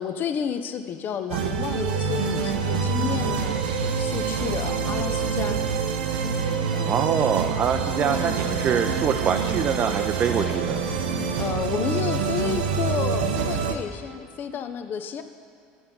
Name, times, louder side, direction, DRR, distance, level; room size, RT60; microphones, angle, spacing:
voice 1, 0.0-3.6 4.0-5.6 6.7-6.9 11.4-15.2, left 8 dB, 45° left, 8 dB, 0.6 m, -31 dB
sound 1, 1.3-13.8, right 5 dB, 90° right, 0.6 m, -26 dB
voice 2, 6.8-10.8, right 7 dB, 40° right, 5 dB, 0.4 m, -25 dB
8.9 x 4.4 x 5.4 m, 2.4 s
hypercardioid pair, 85°, 4 cm